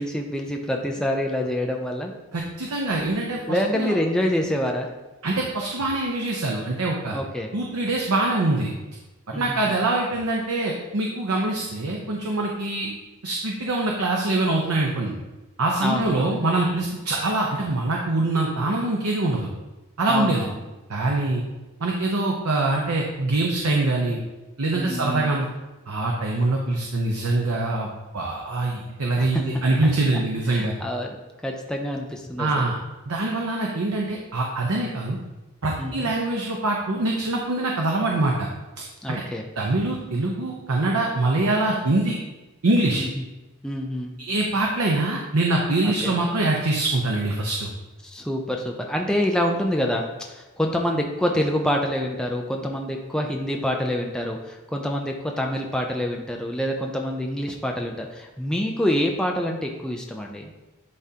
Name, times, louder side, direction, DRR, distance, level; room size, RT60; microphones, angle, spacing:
voice 1, 0.0-2.1 3.5-4.9 7.1-7.5 9.3-9.8 15.8-16.4 20.1-20.5 24.7-25.4 29.2-29.4 29.8-29.9 30.5-32.7 35.8-36.1 39.0-39.4 43.0-43.2 43.6-44.1 45.8-46.2 48.0-60.5, equal, 5° left, 1 dB, 0.5 m, -26 dB
voice 2, 2.3-4.0 5.2-7.2 7.5-8.7 9.3-12.9 13.2-15.1 15.6-19.5 20.0-20.5 20.9-21.4 21.8-24.2 24.6-25.5 25.9-27.9 28.1-30.7 32.4-32.7 33.1-35.2 35.6-38.5 38.8-39.2 39.6-42.2 42.6-43.0 44.2-47.7, right 2 dB, 90° right, -1 dB, 0.8 m, -24 dB
10.5 x 3.6 x 2.8 m, 1.1 s
head